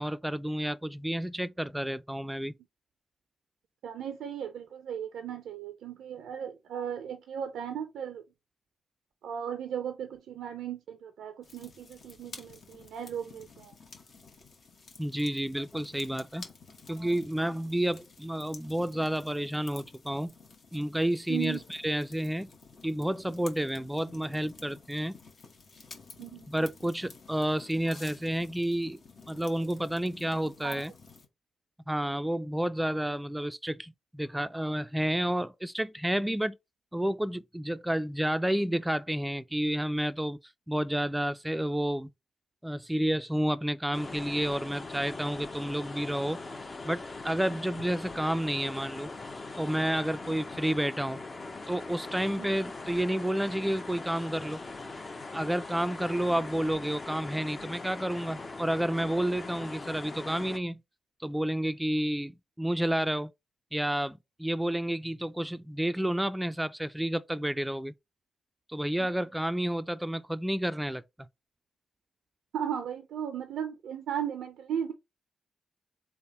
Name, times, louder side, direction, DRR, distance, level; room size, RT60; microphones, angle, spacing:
voice 1, 0.0-2.5 15.0-16.5 16.9-20.3 20.7-22.5 22.8-25.2 26.5-29.0 29.3-30.9 31.9-36.6 36.9-40.4 40.7-42.1 42.6-46.4 46.8-49.1 49.6-51.2 51.7-54.6 55.3-60.8 61.2-63.3 63.7-67.9 68.7-71.0, right 1 dB, 10° right, 0.3 m, -30 dB
voice 2, 3.8-8.2 9.2-13.7 21.3-21.6 26.2-26.5 30.6-30.8 52.4-52.5 56.3-56.4 72.5-74.9, right 9 dB, 80° right, 0.4 m, -36 dB
sound 1, 11.4-31.3, left 4 dB, 60° left, 1.0 m, -52 dB
sound 2, 43.9-60.6, left 3 dB, 40° left, 0.7 m, -41 dB
3.4 x 2.1 x 4.2 m
hypercardioid pair, 40°, 0 cm